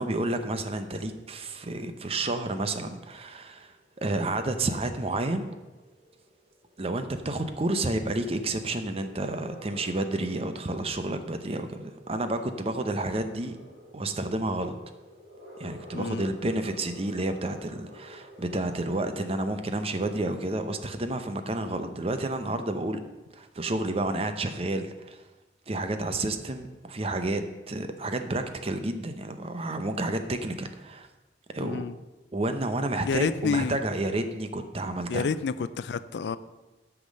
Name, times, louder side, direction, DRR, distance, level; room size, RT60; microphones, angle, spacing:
voice 1, 0.0-3.7 4.0-5.5 6.8-13.6 13.9-14.8 15.6-23.0 23.3-25.2 25.7-27.4 27.7-31.1 31.5-31.9 32.3-35.3, right 2 dB, 35° right, 8 dB, 0.7 m, -30 dB
sound 1, 2.2-19.3, left 1 dB, 80° right, 2.7 m, -51 dB
voice 2, 15.9-16.3 31.6-32.0 33.0-33.8 35.1-36.4, left 5 dB, 70° left, 15 dB, 0.4 m, -29 dB
8.6 x 6.0 x 6.3 m, 1.1 s
head